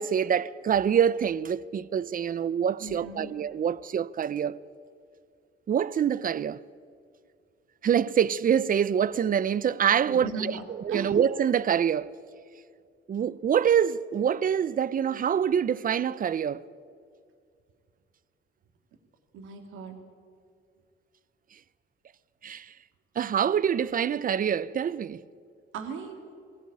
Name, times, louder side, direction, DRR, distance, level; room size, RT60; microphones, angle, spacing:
voice 1, 0.0-4.6 5.7-6.6 7.8-10.6 10.8-12.1 13.1-16.6 22.4-22.7 23.2-25.2, right 8 dB, 45° right, 0.7 m, -25 dB
voice 2, 2.8-3.3 10.0-11.1 19.3-20.0 25.7-26.2, right 4 dB, 90° right, 2.5 m, -37 dB
22.5 x 17.0 x 8.8 m
cardioid pair, 90°, 20 cm